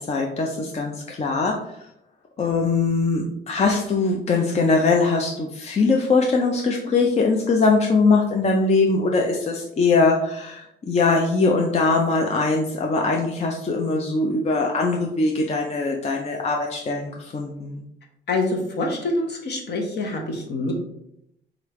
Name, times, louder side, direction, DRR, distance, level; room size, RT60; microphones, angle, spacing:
voice 1, 0.1-1.6 2.4-17.8, left 3 dB, 35° left, 0 dB, 0.5 m, -21 dB
voice 2, 18.3-20.7, left 2 dB, 55° left, 1 dB, 1.0 m, -26 dB
3.8 x 3.2 x 3.1 m, 0.76 s
cardioid pair, 90°, 20 cm